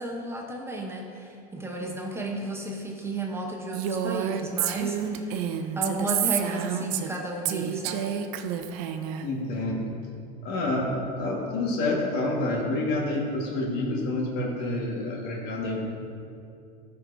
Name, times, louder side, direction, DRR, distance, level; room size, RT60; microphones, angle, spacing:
voice 1, 0.0-8.1, right 1 dB, 10° right, 0 dB, 0.7 m, -33 dB
Female speech woman speaking, 3.7-7.2 7.5-9.2, right 9 dB, 70° right, 0.5 m, -29 dB
voice 2, 9.2-9.9 10.4-15.9, left 2 dB, 55° left, -1 dB, 1.5 m, -28 dB
12.5 x 4.7 x 2.6 m, 2.5 s
supercardioid pair, 105°, 20 cm